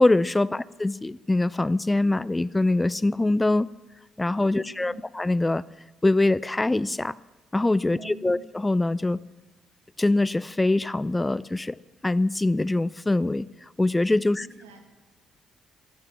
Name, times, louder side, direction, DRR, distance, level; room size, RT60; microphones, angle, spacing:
voice 1, 0.0-3.7 4.2-5.6 6.0-7.1 7.5-9.2 10.0-11.8 12.0-13.5 13.8-14.5, left 2 dB, 20° left, 21 dB, 0.5 m, -23 dB
voice 2, 4.5-5.1 7.9-8.4 14.4-14.9, right 6 dB, 85° right, 3 dB, 2.2 m, -47 dB
13.5 x 11.5 x 8.5 m, 1.1 s
hypercardioid pair, 45°, 0 cm